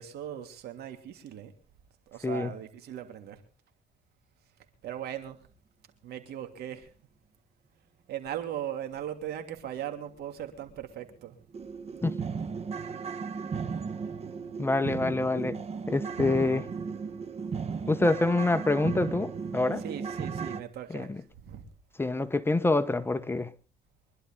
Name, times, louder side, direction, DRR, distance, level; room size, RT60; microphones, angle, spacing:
voice 1, 0.0-1.5 2.1-3.4 4.8-5.4 6.0-6.9 8.1-11.4 19.8-21.1 21.4-21.7, right 10 dB, 70° right, 2.9 m, -38 dB
voice 2, 2.2-2.5 12.0-12.2 14.6-15.6 15.9-16.7 17.9-19.8 20.9-21.2 22.0-23.5, left 2 dB, 15° left, 0.9 m, -26 dB
sound 1, 10.6-10.7 11.1-11.2 11.5-20.6, right 5 dB, 35° right, 1.2 m, -35 dB
25.0 x 11.5 x 3.7 m
cardioid pair, 110°, 17 cm